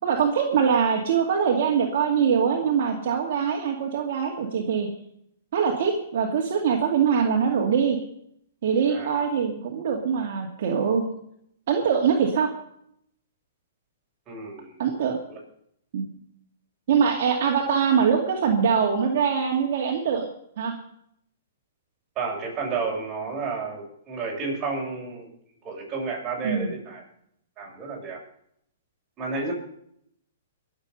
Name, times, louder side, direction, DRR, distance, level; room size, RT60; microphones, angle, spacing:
voice 1, 0.0-4.9 5.5-8.0 8.6-11.0 11.7-12.5 14.8-15.2 15.9-16.1 16.9-20.3 20.6-20.7 26.4-26.7, right 7 dB, 60° right, 0 dB, 2.4 m, -23 dB
voice 2, 8.9-9.2 14.3-14.8 15.3-15.4 22.2-25.3 25.6-27.0 27.6-28.2 29.2-29.5, right 4 dB, 25° right, -3 dB, 7.0 m, -31 dB
22.5 x 7.6 x 5.5 m, 0.71 s
hypercardioid pair, 140°, 0 cm